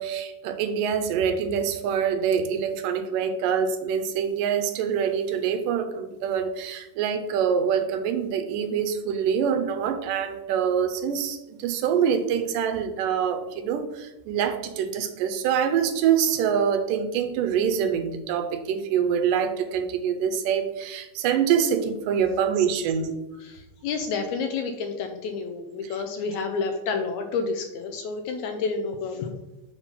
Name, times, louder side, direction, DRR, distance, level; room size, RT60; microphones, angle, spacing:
voice 1, 0.0-23.2, right 7 dB, 85° right, 8 dB, 2.3 m, -25 dB
voice 2, 23.4-29.3, left 4 dB, 75° left, 5 dB, 1.8 m, -30 dB
7.1 x 3.7 x 5.5 m, 0.98 s
omnidirectional pair, 3.8 m